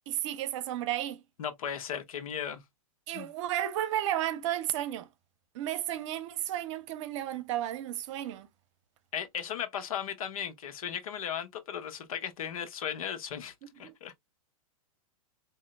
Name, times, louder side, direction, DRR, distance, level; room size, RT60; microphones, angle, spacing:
voice 1, 0.1-1.2 3.1-5.1 5.5-8.5 13.8-13.9, right 12 dB, 55° right, 0.8 m, -33 dB
voice 2, 1.4-2.6 3.1-3.3 9.1-14.2, left 8 dB, 75° left, 1.1 m, -36 dB
5.0 x 2.7 x 2.2 m
hypercardioid pair, 125°, 18 cm